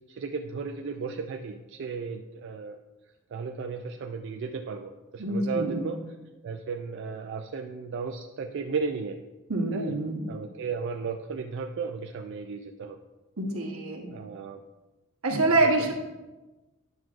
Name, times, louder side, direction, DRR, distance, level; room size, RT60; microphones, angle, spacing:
voice 1, 0.1-2.8 3.3-6.0 6.4-9.2 9.7-10.0 10.3-13.0 14.1-14.6 15.6-15.9, right 5 dB, 55° right, 4 dB, 0.3 m, -35 dB
voice 2, 5.2-5.8 9.5-10.3 13.4-14.1 15.2-15.9, right 2 dB, 85° right, 1 dB, 1.1 m, -26 dB
9.5 x 6.0 x 2.5 m, 1.1 s
head